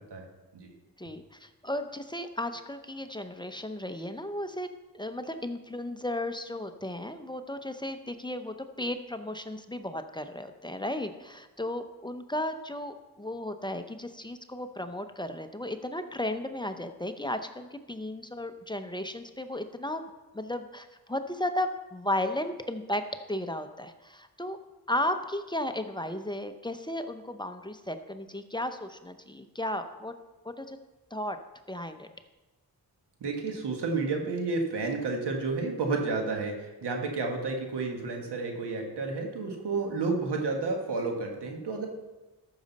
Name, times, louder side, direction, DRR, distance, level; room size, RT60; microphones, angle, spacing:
voice 1, 1.0-4.7 4.9-20.0 20.3-23.0 23.3-24.6 24.9-30.1 30.4-30.8 31.1-31.4 31.7-32.1, left 1 dB, 10° left, 7 dB, 0.7 m, -34 dB
voice 2, 33.2-41.9, right 3 dB, 90° right, 2 dB, 1.6 m, -31 dB
13.5 x 6.5 x 4.1 m, 1.1 s
cardioid pair, 70°, 39 cm